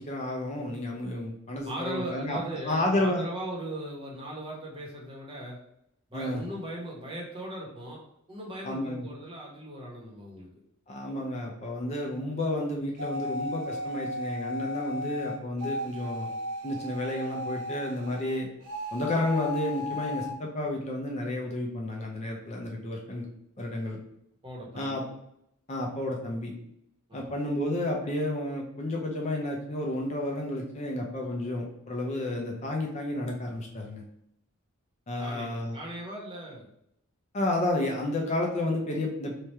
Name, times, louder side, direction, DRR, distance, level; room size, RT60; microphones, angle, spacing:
voice 1, 0.0-2.4 2.6-3.2 6.1-6.4 8.6-9.1 10.9-16.3 16.6-18.5 18.9-23.2 23.6-24.0 24.7-25.0 25.7-26.5 27.1-34.0 35.1-35.8 37.3-39.3, left 1 dB, 30° left, 0 dB, 0.5 m, -31 dB
voice 2, 1.6-5.6 6.1-8.0 8.3-10.5 24.4-25.0 27.1-27.3 35.2-35.5 35.7-36.7, right 1 dB, 25° right, -3 dB, 0.9 m, -38 dB
sound 1, 13.0-18.4 18.6-20.3, left 1 dB, 80° right, 0.7 m, -35 dB
3.2 x 2.3 x 4.1 m, 0.76 s
head